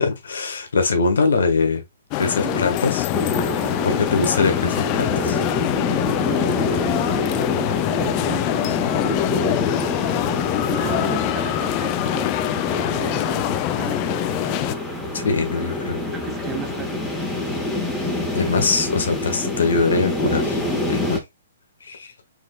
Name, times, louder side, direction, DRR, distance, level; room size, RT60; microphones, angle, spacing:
voice 1, 0.0-1.8 2.2-3.1 3.8-5.4 15.1-16.0 18.3-20.6 20.9-21.2 21.8-22.1, left 4 dB, 80° left, 1.4 m, -22 dB
sound 1, 2.1-14.7, left 17 dB, 35° left, 0.3 m, -24 dB
sound 2, 3.1-21.2, left 2 dB, 10° left, 1.3 m, -26 dB
voice 2, 4.0-4.3 7.7-9.4 10.7-12.4 12.8-14.6 16.0-17.0, right 9 dB, 20° right, 0.8 m, -35 dB
4.9 x 3.9 x 2.3 m
hypercardioid pair, 140°, 0 cm